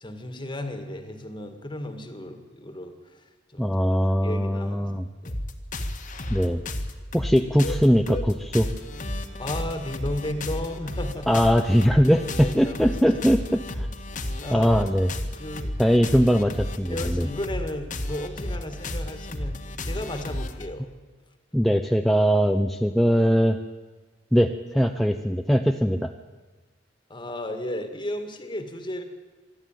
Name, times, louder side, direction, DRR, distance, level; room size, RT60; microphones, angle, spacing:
voice 1, 0.0-2.9 3.5-3.7 4.0-4.9 5.2-5.3 9.4-11.4 11.8-12.0 12.4-13.1 14.1-14.7 15.4-15.7 16.9-19.6 19.8-20.9 27.1-29.0, left 1 dB, 25° left, 7 dB, 2.0 m, -34 dB
voice 2, 3.6-5.1 6.3-6.6 7.1-8.7 11.3-13.9 14.5-15.1 15.8-17.3 21.5-23.6 24.3-26.1, equal, ahead, 4 dB, 0.6 m, -21 dB
sound 1, 5.3-20.7, left 1 dB, 45° left, 1.7 m, -32 dB
26.0 x 11.5 x 9.2 m, 1.3 s
head